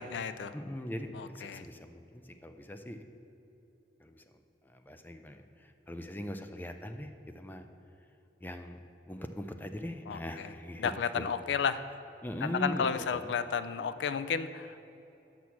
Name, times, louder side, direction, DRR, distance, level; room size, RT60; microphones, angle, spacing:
voice 1, 0.0-0.5 1.1-1.7 10.1-10.5 10.8-11.8 12.4-14.8, left 6 dB, 85° left, 12 dB, 0.4 m, -32 dB
voice 2, 0.5-3.0 4.0-4.2 4.6-7.7 8.4-8.8 9.1-11.3 12.2-13.3, equal, 10° left, 7 dB, 0.4 m, -41 dB
6.2 x 6.1 x 7.0 m, 2.9 s
head